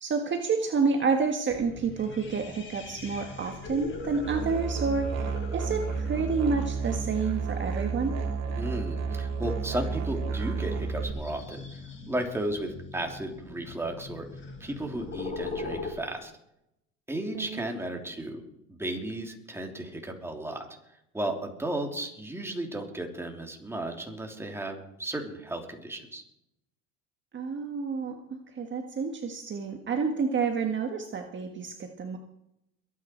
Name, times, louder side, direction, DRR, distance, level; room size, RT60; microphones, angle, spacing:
voice 1, 0.0-8.2 17.3-17.7 27.3-32.2, right 5 dB, 35° right, 4 dB, 1.6 m, -29 dB
sound 1, 1.5-15.9, left 3 dB, 35° left, 4.5 m, -42 dB
Musical instrument, 4.3-11.1, right 5 dB, 55° right, 3.0 m, -31 dB
voice 2, 8.6-11.8 12.1-14.3 14.6-16.3 17.1-18.4 18.8-20.7 21.1-26.2, right 1 dB, 10° right, 2 dB, 3.1 m, -34 dB
22.5 x 9.5 x 4.5 m, 0.79 s
supercardioid pair, 105°, 32 cm